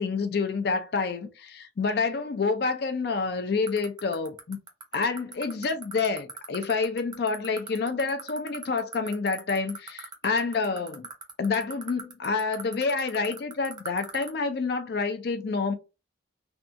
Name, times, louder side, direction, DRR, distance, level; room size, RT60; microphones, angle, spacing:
voice 1, 0.0-4.6 4.9-11.1 11.4-15.7, left 4 dB, 55° left, 0.4 m, -28 dB
sound 1, 3.7-14.3, right 6 dB, 20° right, 0.5 m, -38 dB
2.7 x 2.2 x 2.5 m
head